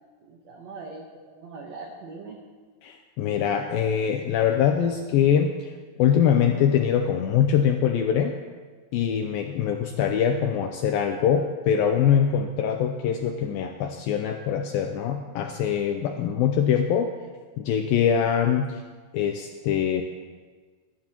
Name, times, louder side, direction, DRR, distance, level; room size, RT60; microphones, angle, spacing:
voice 1, 0.2-2.4, right 3 dB, 90° right, 0 dB, 1.5 m, -41 dB
voice 2, 2.8-5.5 6.0-8.3 8.9-17.1 17.6-18.8 19.1-20.0, left 8 dB, 85° left, 4 dB, 2.1 m, -23 dB
22.0 x 12.5 x 3.0 m, 1.5 s
omnidirectional pair, 4.8 m